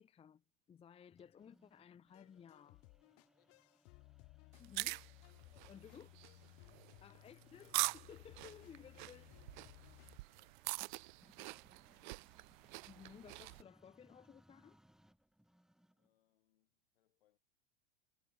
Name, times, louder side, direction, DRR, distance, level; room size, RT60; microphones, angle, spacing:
voice 1, 0.0-2.8 4.6-5.0 5.7-6.1 7.0-9.4 12.9-14.8, left 8 dB, 20° left, 0.9 m, -58 dB
sound 1, 1.2-16.2, equal, ahead, 3.9 m, -72 dB
sound 2, 2.1-10.2, left 29 dB, 45° left, 3.5 m, -61 dB
voice 2, 3.2-3.7 5.4-5.9 6.6-7.1 10.3-10.7 11.1-11.9 15.9-17.4, left 14 dB, 65° left, 5.4 m, -79 dB
sound 3, 4.5-13.6, right 23 dB, 50° right, 0.5 m, -44 dB
figure-of-eight pair, 85°, 31 cm